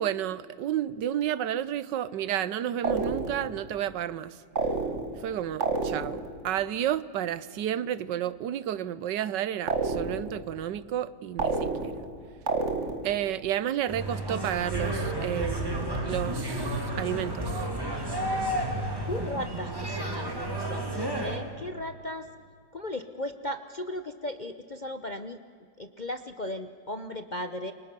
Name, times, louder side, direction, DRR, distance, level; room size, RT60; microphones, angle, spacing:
voice 1, 0.0-4.4 5.2-11.9 13.0-17.6, right 11 dB, 75° right, 17 dB, 1.4 m, -31 dB
sound 1, 2.8-3.6 4.6-5.3 5.6-6.3 9.7-10.4 11.4-12.1 12.5-13.2, right 3 dB, 40° right, 2.0 m, -29 dB
sound 2, 13.9-21.4, right 1 dB, 10° right, 3.3 m, -31 dB
voice 2, 19.0-22.3 22.7-25.4 25.8-27.7, left 1 dB, 40° left, 8 dB, 0.7 m, -36 dB
29.0 x 24.0 x 6.8 m, 2.2 s
omnidirectional pair, 1.9 m